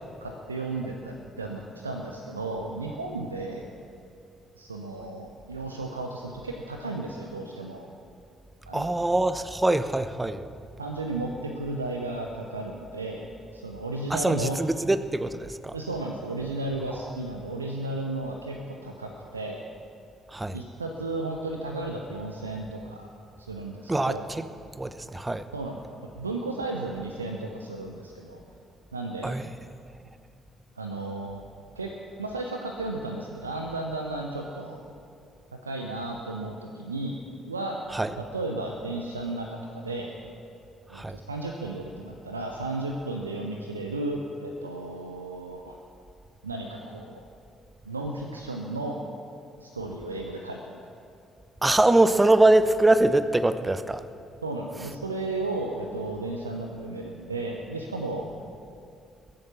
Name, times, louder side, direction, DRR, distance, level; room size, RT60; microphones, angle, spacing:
voice 1, 0.2-3.7 4.6-7.9 8.7-8.9 10.8-13.2 13.5-14.6 15.7-19.6 20.5-23.1 23.4-24.2 25.5-25.8 26.1-28.4 28.9-29.4 30.8-31.9 32.2-34.8 35.6-37.2 37.5-37.8 38.1-40.2 40.9-45.8 46.4-47.2 47.8-49.0 49.6-50.7 54.4-58.3, right 2 dB, 85° right, 2 dB, 0.7 m, -34 dB
voice 2, 8.7-10.4 14.1-15.8 20.3-20.6 23.9-24.4 24.8-25.4 29.2-29.5 37.9-38.1 40.9-41.2 51.6-54.0, right 2 dB, 15° right, 12 dB, 0.8 m, -23 dB
21.5 x 8.8 x 6.0 m, 2.5 s
figure-of-eight pair, 45°, 0 cm